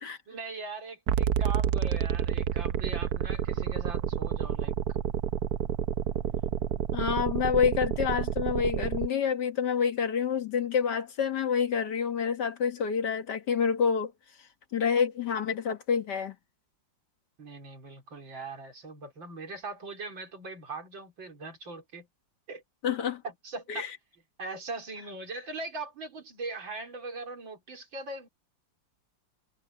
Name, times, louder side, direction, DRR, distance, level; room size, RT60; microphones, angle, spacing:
voice 1, 0.3-4.7 17.4-22.1 22.5-22.6 23.2-23.9 24.4-28.3, right 3 dB, 90° right, 4.5 m, -40 dB
sound 1, 1.1-9.1, right 9 dB, 65° right, 1.1 m, -29 dB
voice 2, 6.9-14.1 14.7-16.4 22.8-23.2 23.7-23.9, left 7 dB, 65° left, 2.2 m, -28 dB
omnidirectional pair, 2.0 m